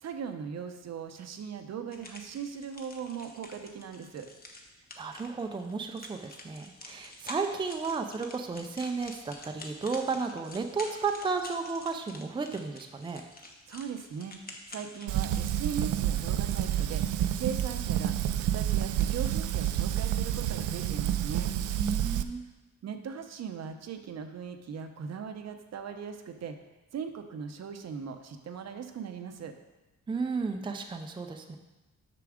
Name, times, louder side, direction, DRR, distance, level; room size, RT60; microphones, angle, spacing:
voice 1, 0.0-4.3 13.7-14.4 14.7-21.6 22.8-26.6 26.9-29.5, right 7 dB, 60° right, 7 dB, 0.8 m, -39 dB
sound 1, 1.9-15.6, left 2 dB, 30° left, 1.1 m, -48 dB
voice 2, 5.0-13.2 21.8-22.4 30.1-31.6, right 4 dB, 15° right, 5 dB, 0.5 m, -33 dB
Fire, 15.1-22.2, right 11 dB, 90° right, 0.5 m, -29 dB
6.9 x 6.0 x 5.0 m, 1.1 s
cardioid pair, 115°, 30 cm